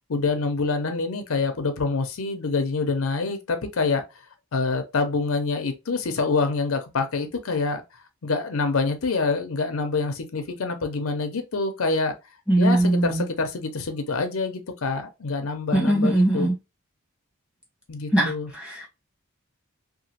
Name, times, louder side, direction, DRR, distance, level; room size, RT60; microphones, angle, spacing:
voice 1, 0.1-4.0 4.5-7.8 8.2-12.1 12.6-16.5 17.9-18.5, left 4 dB, 75° left, 0.6 m, -26 dB
voice 2, 12.5-13.3 15.7-16.5 18.1-18.9, right 1 dB, 5° right, 1.1 m, -21 dB
2.9 x 2.4 x 2.7 m
head